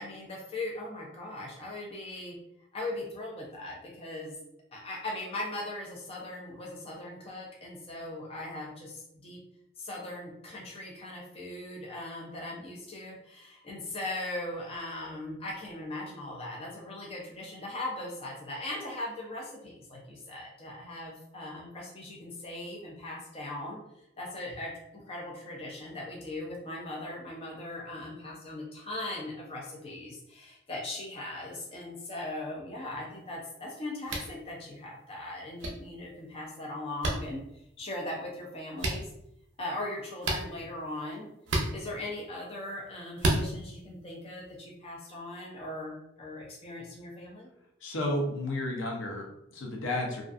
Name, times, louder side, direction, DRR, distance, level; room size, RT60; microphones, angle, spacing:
voice 1, 0.0-2.4 2.7-4.4 4.7-9.4 9.8-23.8 24.2-37.4 37.8-39.1 39.6-41.3 41.7-47.5, left 1 dB, 30° left, -3 dB, 0.4 m, -39 dB
sound 1, 34.1-34.3 35.6-35.7 37.0-37.2 38.8-39.0 40.2-40.4 41.5-41.7 43.2-43.4, right 2 dB, 70° right, 0.5 m, -28 dB
voice 2, 47.8-50.2, left 1 dB, 75° left, 0 dB, 0.6 m, -32 dB
2.4 x 2.4 x 2.4 m, 0.79 s
head